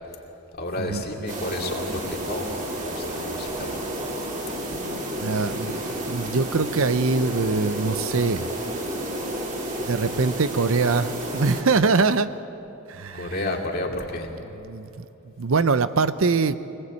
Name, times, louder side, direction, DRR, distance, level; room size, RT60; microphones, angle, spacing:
voice 1, 0.6-2.6 2.8-3.7 13.1-14.3, left 1 dB, 45° left, 1 dB, 2.5 m, -31 dB
sound 1, 1.3-11.6, right 1 dB, 35° right, 2.5 m, -31 dB
voice 2, 5.2-8.5 9.8-12.3 12.9-13.3 14.7-15.1 15.4-16.6, right 4 dB, 70° right, 13 dB, 0.7 m, -23 dB
24.5 x 19.0 x 8.4 m, 3.0 s
head